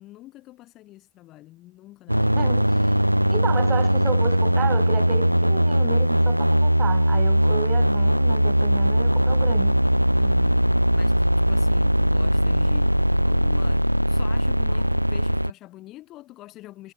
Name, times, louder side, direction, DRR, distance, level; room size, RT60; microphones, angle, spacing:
voice 1, 0.0-2.7 10.2-13.0 13.2-16.9, left 16 dB, 35° left, 2.8 m, -45 dB
sound 1, 2.1-15.5, equal, 90° right, 0.5 m, -20 dB
voice 2, 2.3-2.7 3.3-9.8, right 10 dB, 25° right, 0.6 m, -33 dB
figure-of-eight pair, 90°, 0 cm